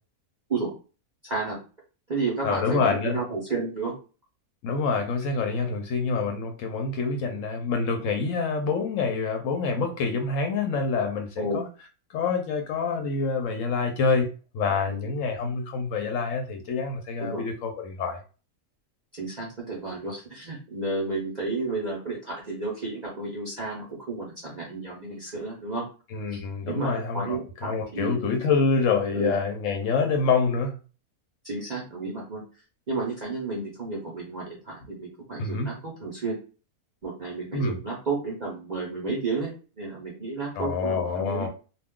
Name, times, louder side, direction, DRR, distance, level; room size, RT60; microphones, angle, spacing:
voice 1, 1.2-1.6 2.1-4.0 11.4-11.6 14.9-15.1 17.2-17.4 19.2-25.8 26.3-26.4 26.7-28.2 29.1-29.3 31.4-32.4 32.9-36.4 37.0-41.5, right 3 dB, 45° right, -3 dB, 0.6 m, -32 dB
voice 2, 2.4-3.2 4.6-11.6 12.1-14.3 14.5-18.2 26.1-30.8 35.4-35.7 37.5-37.8 40.6-41.5, left 4 dB, 70° left, 4 dB, 0.8 m, -26 dB
2.3 x 2.3 x 3.5 m, 0.35 s
omnidirectional pair, 1.6 m